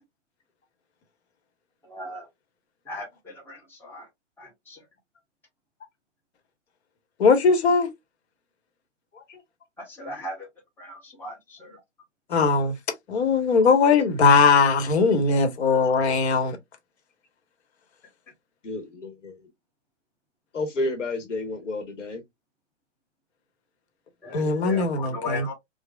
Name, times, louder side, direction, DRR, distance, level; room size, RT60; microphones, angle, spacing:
voice 1, 1.8-2.3 2.8-4.1 4.4-4.9 9.8-10.5 10.8-11.8 24.2-25.5, left 3 dB, 5° left, 1.2 m, -37 dB
voice 2, 7.2-7.9 12.3-12.8 13.1-16.6 24.3-25.5, left 4 dB, 60° left, 1.2 m, -20 dB
voice 3, 18.6-19.5 20.5-22.2, left 2 dB, 85° left, 1.3 m, -31 dB
4.8 x 2.3 x 2.3 m
hypercardioid pair, 125°, 37 cm